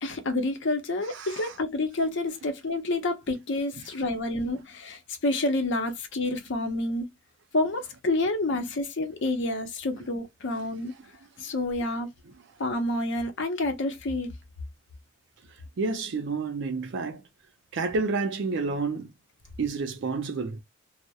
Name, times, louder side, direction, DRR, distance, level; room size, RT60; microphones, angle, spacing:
voice 1, 0.0-7.1 7.5-10.9 11.4-12.1 12.6-14.3, left 2 dB, 65° left, 0.6 m, -28 dB
voice 2, 1.1-1.5 15.8-17.2 17.7-19.1 19.6-20.6, right 4 dB, 65° right, 0.5 m, -29 dB
2.3 x 2.0 x 2.7 m
head